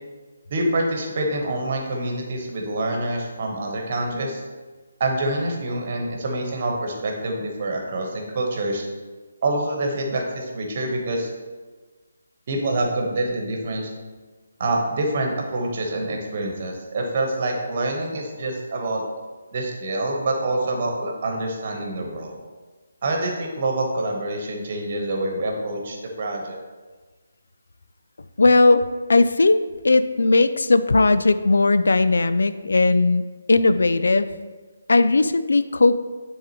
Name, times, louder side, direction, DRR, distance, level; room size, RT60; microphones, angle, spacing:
voice 1, 0.5-4.4 5.0-8.9 9.4-11.3 12.5-13.9 14.6-19.0 19.5-22.4 23.0-26.6, right 2 dB, 40° right, 1 dB, 1.2 m, -26 dB
voice 2, 28.4-28.8 29.1-29.6 29.8-33.2 33.5-34.3 34.9-35.9, left 3 dB, 65° left, 12 dB, 0.3 m, -17 dB
10.0 x 3.6 x 3.1 m, 1.4 s
figure-of-eight pair, 145°, 0 cm